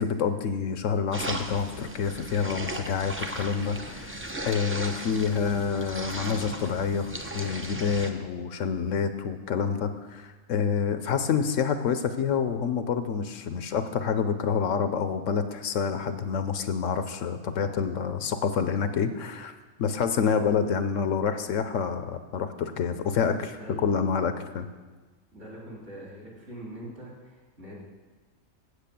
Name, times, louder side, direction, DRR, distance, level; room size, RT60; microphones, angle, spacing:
voice 1, 0.0-4.2 4.4-19.5 19.8-24.7, left 6 dB, 70° left, 9 dB, 1.0 m, -27 dB
sound 1, 1.1-8.1, right 1 dB, 15° right, 0.5 m, -36 dB
voice 2, 23.5-23.9 25.3-27.8, equal, 60° right, -4 dB, 3.5 m, -43 dB
8.3 x 8.1 x 6.9 m, 1.3 s
omnidirectional pair, 1.4 m